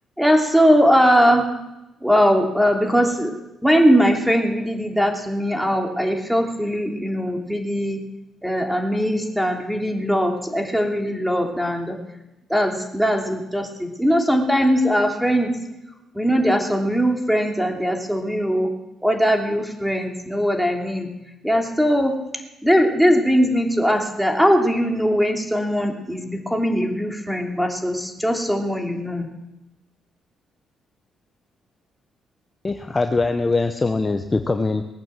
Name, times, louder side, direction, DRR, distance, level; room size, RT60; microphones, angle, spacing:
voice 1, 0.2-1.4 2.0-8.0 8.4-12.0 12.5-15.5 16.1-18.7 19.0-21.1 21.4-22.2 22.6-29.3, equal, ahead, 2 dB, 2.9 m, -20 dB
voice 2, 32.6-34.8, left 3 dB, 25° left, 7 dB, 0.9 m, -22 dB
20.0 x 8.8 x 7.6 m, 0.96 s
cardioid pair, 90°, 0 cm